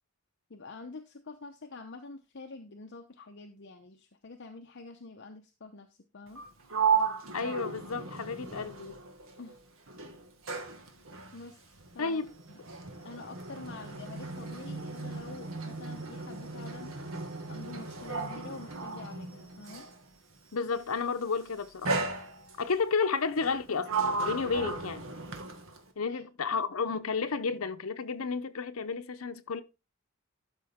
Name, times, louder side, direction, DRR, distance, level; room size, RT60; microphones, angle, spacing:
voice 1, 0.5-6.4 9.4-9.6 11.3-12.2 12.5-12.6 13.0-16.9 17.5-19.9 26.0-26.2, left 3 dB, 55° left, 0.8 m, -47 dB
Sliding door, 6.3-9.6 9.9-20.0 20.9-21.2 21.8-22.8 23.4-25.9, right 4 dB, 70° right, 1.8 m, -35 dB
voice 2, 7.3-9.0 12.0-12.3 20.5-21.9 22.6-23.9 24.2-25.1 26.0-29.6, left 5 dB, 85° left, 0.8 m, -32 dB
12.5 x 5.2 x 3.6 m
head